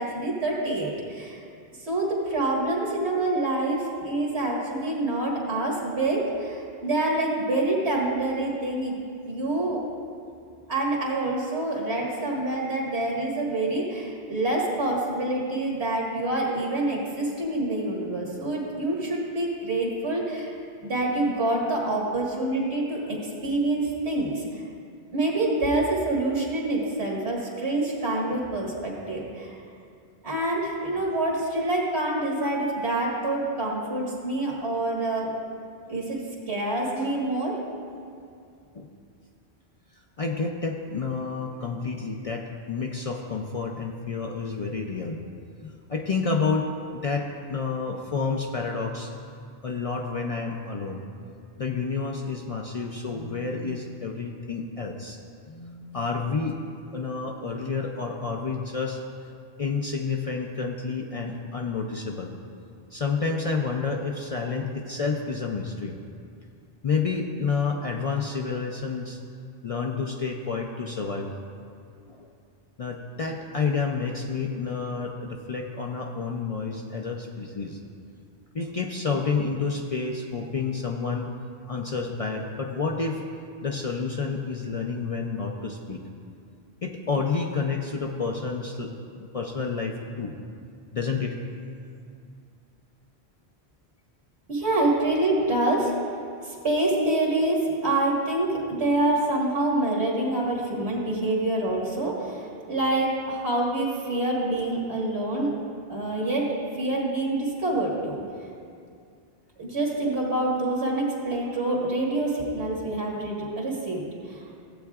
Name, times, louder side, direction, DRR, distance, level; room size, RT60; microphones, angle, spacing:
voice 1, 0.0-1.4 1.8-8.9 9.3-9.8 10.7-24.5 25.1-29.5 30.2-35.3 35.9-36.2 36.5-37.6 94.5-96.0 96.4-105.5 105.9-106.5 106.7-108.2 109.6-114.4, right 2 dB, 80° right, -3 dB, 2.0 m, -26 dB
voice 2, 40.2-45.2 45.6-49.1 49.6-51.0 51.6-55.2 55.5-56.6 56.9-59.0 59.6-62.3 62.9-66.0 66.8-69.2 69.6-71.3 72.1-72.3 72.8-77.8 78.5-81.3 81.7-83.2 83.6-86.0 86.8-90.3 90.9-91.4, left 4 dB, 45° left, 1 dB, 0.5 m, -29 dB
15.5 x 8.3 x 2.4 m, 2.4 s
omnidirectional pair, 1.1 m